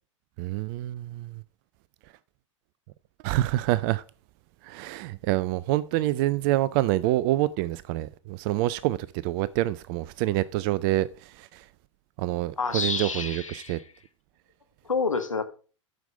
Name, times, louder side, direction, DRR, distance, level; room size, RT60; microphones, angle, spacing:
voice 1, 0.4-1.4 3.2-4.0 4.6-9.0 9.2-11.6 12.2-13.8, right 16 dB, 40° right, 0.5 m, -27 dB
voice 2, 12.6-13.8 14.8-15.4, left 4 dB, 85° left, 1.4 m, -28 dB
9.2 x 6.5 x 4.9 m
figure-of-eight pair, 95°, 16 cm